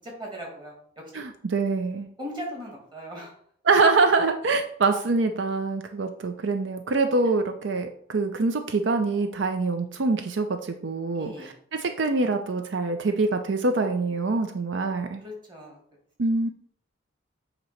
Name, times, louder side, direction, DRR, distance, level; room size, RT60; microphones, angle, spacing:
voice 1, 0.0-0.7 2.2-3.3 11.1-11.5 15.2-15.8, equal, 25° right, -2 dB, 2.1 m, -38 dB
voice 2, 1.1-2.1 3.6-15.2 16.2-16.5, right 3 dB, 75° right, 6 dB, 0.5 m, -25 dB
8.0 x 3.0 x 5.7 m, 0.64 s
head